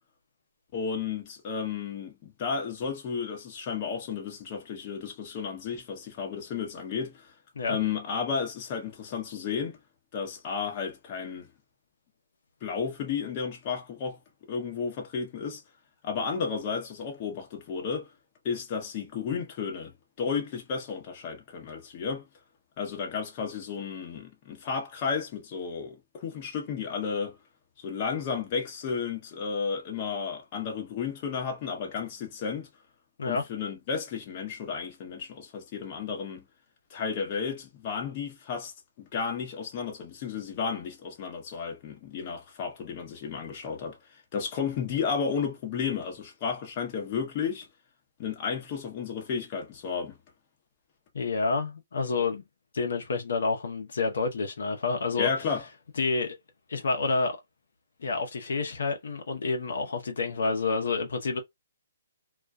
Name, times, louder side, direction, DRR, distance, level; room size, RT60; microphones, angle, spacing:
voice 1, 0.7-7.3 7.7-9.8 10.1-11.5 12.6-14.2 14.5-15.6 16.0-18.1 18.4-19.9 20.2-22.3 22.8-27.4 27.8-32.7 33.2-36.4 36.9-38.7 39.0-47.7 48.2-50.2 55.2-55.6, left 6 dB, 35° left, 0.9 m, -33 dB
voice 2, 51.1-52.4 52.7-55.3 56.0-56.4 56.7-57.4 58.0-61.4, left 4 dB, 70° left, 0.7 m, -28 dB
2.3 x 2.2 x 2.5 m
hypercardioid pair, 150°, 0 cm